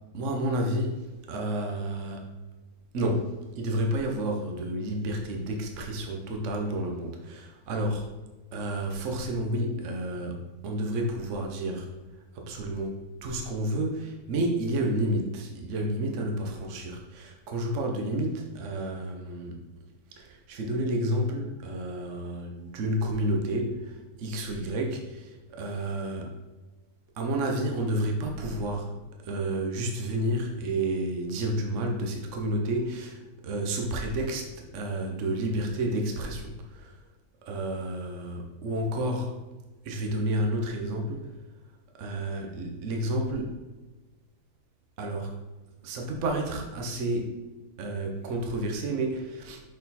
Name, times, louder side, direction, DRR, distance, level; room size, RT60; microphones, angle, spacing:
voice 1, 0.1-1.0 1.3-2.2 2.9-8.1 8.5-10.4 10.6-11.9 12.3-19.5 20.2-23.9 24.2-26.4 27.2-28.9 29.2-34.5 34.7-36.9 37.5-39.4 39.8-41.3 42.0-43.5 45.0-45.4 45.8-47.4 47.8-49.6, right 1 dB, 55° right, 2 dB, 1.1 m, -30 dB
6.5 x 4.2 x 4.1 m, 1.2 s
omnidirectional pair, 1.8 m